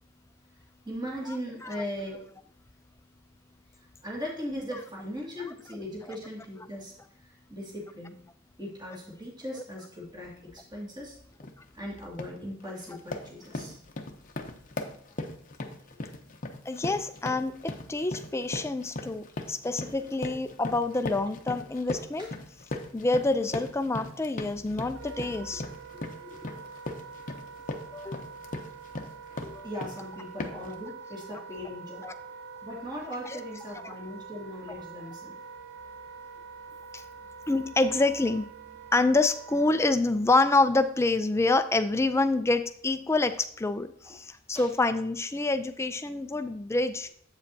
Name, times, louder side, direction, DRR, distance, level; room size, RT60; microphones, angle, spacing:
voice 1, 0.8-2.3 4.0-6.9 7.2-8.2 8.6-11.2 11.7-13.8 22.2-22.3 26.2-26.5 29.4-32.1 32.6-35.4 44.0-44.2 44.5-44.7, equal, 20° right, -5 dB, 2.2 m, -39 dB
sound 1, 11.4-11.6 12.0-12.4 12.8-30.0 30.4-30.7, left 2 dB, 40° left, 0.7 m, -38 dB
voice 2, 16.7-22.3 22.9-25.6 27.9-28.3 29.4-29.7 32.0-32.1 33.8-33.9 36.9-37.0 37.5-38.5 38.9-47.1, left 2 dB, 15° left, 9 dB, 0.4 m, -27 dB
Wind instrument woodwind instrument, 24.9-39.8, right 5 dB, 60° right, 0.6 m, -45 dB
8.1 x 7.4 x 2.7 m, 0.63 s
head